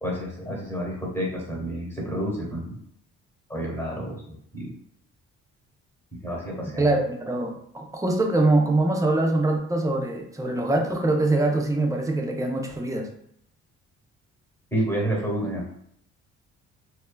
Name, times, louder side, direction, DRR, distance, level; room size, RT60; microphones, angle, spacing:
voice 1, 0.0-2.7 3.5-4.7 6.2-6.9 14.7-15.6, right 1 dB, 10° left, -3 dB, 1.1 m, -29 dB
voice 2, 6.8-13.1, right 2 dB, 10° right, 1 dB, 0.4 m, -23 dB
3.0 x 2.2 x 2.2 m, 0.69 s
cardioid pair, 90°, 30 cm